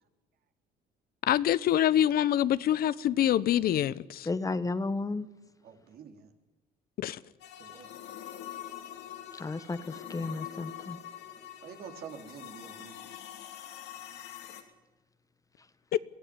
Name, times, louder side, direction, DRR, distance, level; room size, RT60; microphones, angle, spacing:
voice 1, 1.3-4.3 7.0-7.2 15.9-16.0, left 11 dB, 65° left, 0.9 m, -25 dB
voice 2, 4.2-5.3 9.3-11.0, left 3 dB, 20° left, 1.1 m, -33 dB
voice 3, 5.6-6.3 7.6-7.9 11.6-13.1, right 7 dB, 65° right, 3.3 m, -47 dB
sound 1, 7.4-14.6, left 11 dB, 80° left, 3.0 m, -44 dB
23.0 x 15.0 x 9.5 m
cardioid pair, 110°, 17 cm